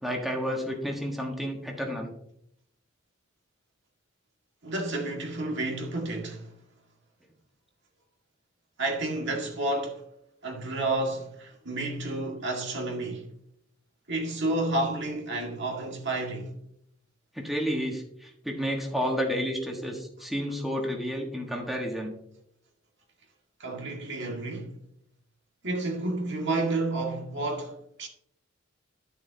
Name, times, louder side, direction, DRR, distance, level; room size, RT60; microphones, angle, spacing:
voice 1, 0.0-2.1 17.3-22.1, equal, ahead, 1.4 m, -31 dB
voice 2, 4.6-6.5 8.8-10.0 10.4-13.3 14.1-16.5 23.6-24.7 25.6-28.1, right 2 dB, 60° right, 2.0 m, -30 dB
11.5 x 7.0 x 2.8 m
head